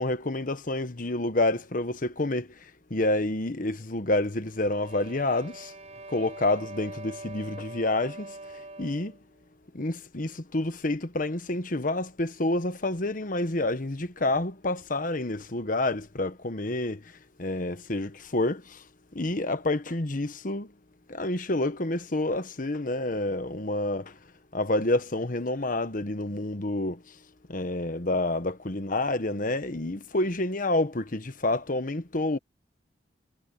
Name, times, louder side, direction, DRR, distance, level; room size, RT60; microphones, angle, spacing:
voice 1, 0.0-5.7 6.1-9.2 9.7-18.8 19.1-20.7 21.1-24.2 24.5-27.2 27.5-32.4, left 2 dB, 50° left, 1.3 m, -28 dB
sound 1, 4.5-9.2, right 2 dB, 40° right, 5.6 m, -43 dB
head